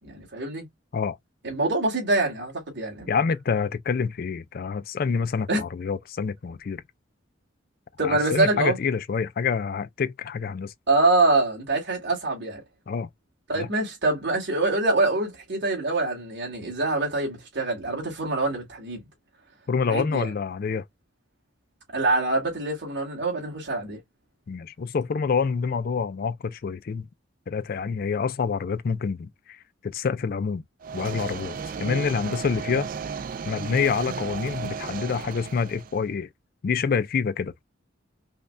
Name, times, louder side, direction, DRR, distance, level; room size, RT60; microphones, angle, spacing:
voice 1, 0.0-0.7 1.4-3.2 5.5-5.6 8.0-8.8 10.9-12.6 13.5-19.0 19.9-20.3 21.9-24.0 32.0-32.1, right 2 dB, 60° right, 2.4 m, -25 dB
voice 2, 3.1-6.8 8.0-10.7 12.9-13.1 13.6-13.7 19.7-20.8 24.5-27.1 27.5-30.6 30.9-32.9 33.4-36.3 36.6-37.7, left 5 dB, 45° left, 0.3 m, -27 dB
sound 1, 30.8-36.0, right 6 dB, 45° right, 0.3 m, -34 dB
5.4 x 2.3 x 2.5 m
head